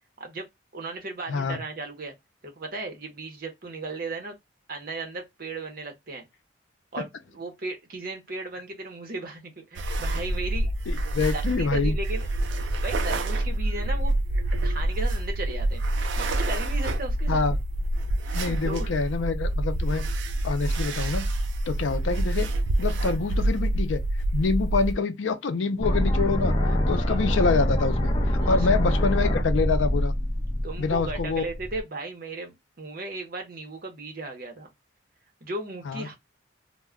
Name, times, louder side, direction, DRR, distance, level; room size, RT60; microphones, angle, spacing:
voice 1, 0.7-2.1 2.4-4.3 4.7-6.2 6.9-10.7 11.2-12.3 12.8-14.1 14.6-15.8 16.2-17.4 18.3-18.9 27.0-27.2 28.4-28.6 30.6-34.7 35.4-36.1, right 3 dB, 50° right, 0.7 m, -36 dB
sound 1, 9.8-24.9, right 1 dB, 70° right, 0.4 m, -27 dB
voice 2, 10.9-12.0 17.3-17.6 18.3-20.0 20.4-21.3 21.6-22.5 22.8-24.0 24.3-26.5 26.9-30.1 30.8-31.4 35.8-36.1, left 4 dB, 75° left, 0.5 m, -26 dB
sound 2, 25.8-31.8, equal, 25° left, 0.5 m, -25 dB
2.2 x 2.1 x 3.5 m
head